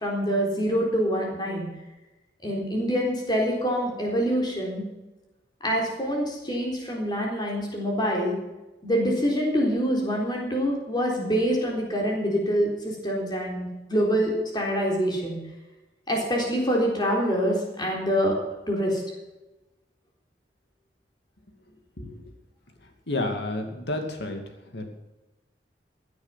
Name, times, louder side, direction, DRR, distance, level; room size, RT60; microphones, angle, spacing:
voice 1, 0.0-1.7 2.4-4.8 5.6-8.4 8.8-15.4 16.1-18.4 18.7-19.0, equal, 25° left, -1 dB, 3.9 m, -25 dB
voice 2, 23.1-24.4 24.7-24.9, left 2 dB, 70° left, 5 dB, 2.5 m, -30 dB
16.0 x 9.6 x 5.9 m, 1.0 s
head